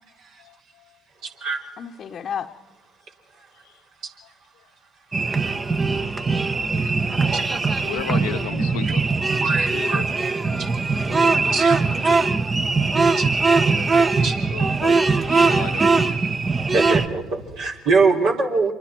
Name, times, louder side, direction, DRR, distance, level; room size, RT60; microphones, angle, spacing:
voice 1, 0.4-0.9 3.6-3.7 6.7-7.0 7.8-9.0 9.5-10.1 14.5-15.9, left 14 dB, 75° left, 10 dB, 0.7 m, -35 dB
voice 2, 1.2-1.6 5.4-5.5 7.3-7.4 9.4-10.0 10.6-10.7 11.4-11.9 12.4-12.5 13.2-13.3 14.2-14.4 16.7-18.7, right 4 dB, 65° right, 1 dB, 3.7 m, -23 dB
voice 3, 1.8-2.5 10.9-11.6 11.9-12.6, left 7 dB, 50° left, 2 dB, 1.0 m, -35 dB
sound 1, 5.1-17.1, right 4 dB, 30° right, 1.3 m, -21 dB
27.0 x 24.0 x 4.5 m, 1.1 s
hypercardioid pair, 60°, 0 cm